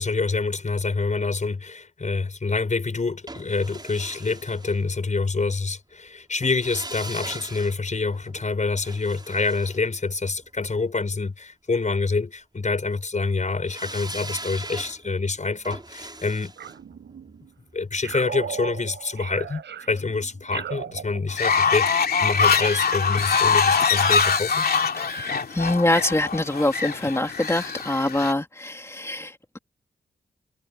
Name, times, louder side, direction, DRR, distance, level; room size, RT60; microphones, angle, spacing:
voice 1, 0.0-16.5 17.7-24.7, left 4 dB, 40° left, 6.3 m, -26 dB
sound 1, 3.3-5.4 6.4-10.7 13.7-18.7 19.0-19.1, right 2 dB, 25° right, 5.4 m, -41 dB
sound 2, 16.6-17.5 18.0-21.7, right 8 dB, 90° right, 7.5 m, -37 dB
Fowl, 21.3-28.3, left 5 dB, 60° left, 2.6 m, -23 dB
voice 2, 25.0-29.6, left 1 dB, 15° left, 2.9 m, -25 dB
cardioid pair, 65°, 18 cm